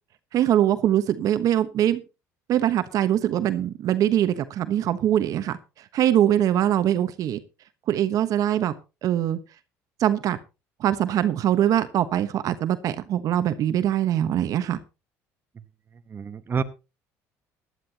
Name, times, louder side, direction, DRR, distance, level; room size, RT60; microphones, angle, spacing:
voice 1, 0.3-2.0 2.5-5.6 5.9-7.4 7.9-8.7 9.0-9.4 10.0-10.4 10.8-14.8, right 11 dB, 60° right, 12 dB, 1.1 m, -22 dB
voice 2, 16.1-16.6, right 6 dB, 30° right, 9 dB, 1.1 m, -28 dB
17.5 x 11.0 x 2.9 m, 0.28 s
supercardioid pair, 85°, 7 cm